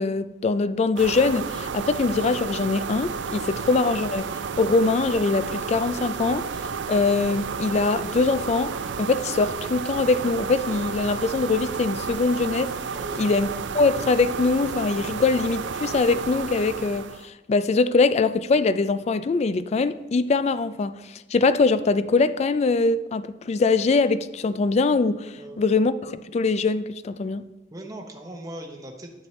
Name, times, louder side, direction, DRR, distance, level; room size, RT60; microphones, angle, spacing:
voice 1, 0.0-4.3 4.6-6.5 6.9-12.7 13.2-13.5 13.7-27.4, left 3 dB, 35° left, 0.3 m, -23 dB
sound 1, 1.0-17.3, right 5 dB, 70° right, 0.4 m, -32 dB
voice 2, 12.9-13.3 25.4-25.7 27.7-29.1, right 1 dB, 20° right, 0.8 m, -39 dB
10.5 x 8.6 x 3.2 m
head